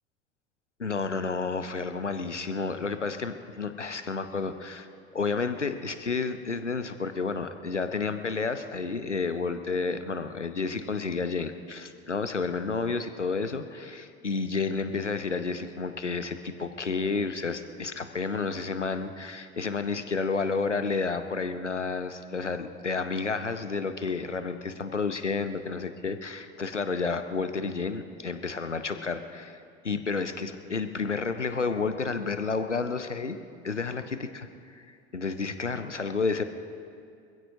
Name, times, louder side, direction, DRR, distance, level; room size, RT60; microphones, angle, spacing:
voice 1, 0.8-4.9 5.1-29.6 29.8-33.4 33.6-36.4, left 4 dB, 90° left, 10 dB, 0.7 m, -31 dB
26.0 x 15.5 x 2.7 m, 2.4 s
figure-of-eight pair, 70°, 35 cm